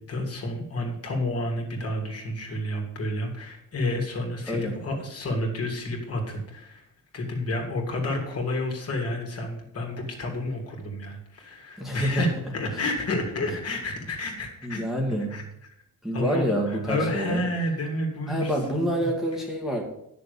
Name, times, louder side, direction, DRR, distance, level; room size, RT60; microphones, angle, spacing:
voice 1, 0.1-6.8 7.1-14.8 15.3-15.4 16.1-19.1, left 1 dB, 45° left, 1 dB, 2.8 m, -30 dB
voice 2, 11.8-12.3 12.7-12.8 14.6-15.3 16.0-17.4 18.3-19.8, equal, ahead, -1 dB, 1.8 m, -27 dB
10.0 x 6.9 x 6.9 m, 0.77 s
cardioid pair, 130°, 33 cm